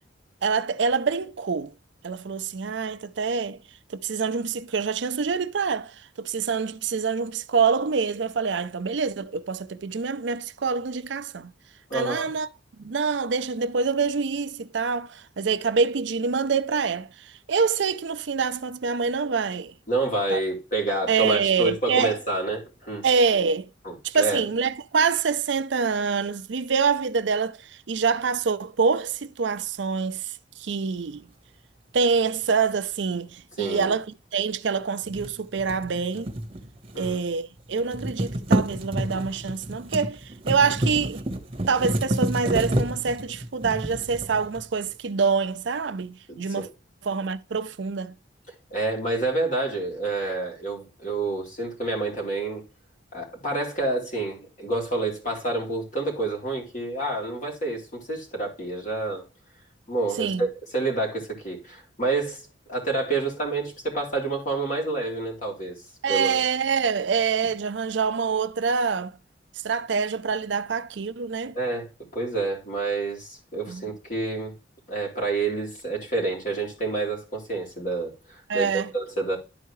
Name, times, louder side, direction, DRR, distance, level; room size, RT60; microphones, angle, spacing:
voice 1, 0.4-1.7 2.0-3.6 3.9-11.5 11.9-12.5 12.8-19.7 20.3-20.4 21.1-22.2 23.0-23.7 24.0-31.2 31.9-34.1 34.3-36.3 37.0-41.2 41.7-46.7 47.0-48.1 60.2-60.5 66.0-69.2 69.6-71.6 73.7-73.9 78.5-78.9, right 5 dB, 70° right, 0.5 m, -26 dB
voice 2, 11.9-12.3 19.9-23.1 23.9-24.5 33.6-33.9 36.9-37.3 46.3-46.7 48.7-52.6 53.1-59.3 59.9-62.4 62.7-65.8 66.1-66.4 71.5-74.5 74.9-79.4, right 2 dB, 45° left, 3.5 m, -28 dB
sound 1, 35.0-37.3 37.6-44.9, right 1 dB, 30° right, 1.0 m, -29 dB
12.0 x 4.6 x 3.1 m
head